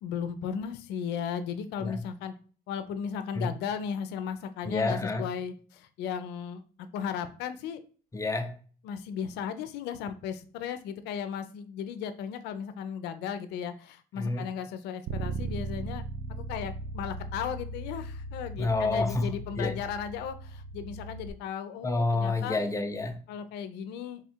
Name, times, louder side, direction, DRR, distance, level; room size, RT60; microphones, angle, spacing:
voice 1, 0.0-2.3 2.7-7.8 8.8-16.0 16.3-22.6 23.3-24.2, left 7 dB, 85° left, 10 dB, 0.5 m, -36 dB
voice 2, 4.6-5.3 8.1-8.6 14.2-14.5 18.6-19.3 19.6-19.8 21.8-23.2, left 3 dB, 20° left, 6 dB, 0.5 m, -28 dB
Bass guitar, 15.1-21.3, right 3 dB, 60° right, 0.5 m, -38 dB
3.6 x 2.3 x 4.3 m, 0.41 s
cardioid pair, 110°, 17 cm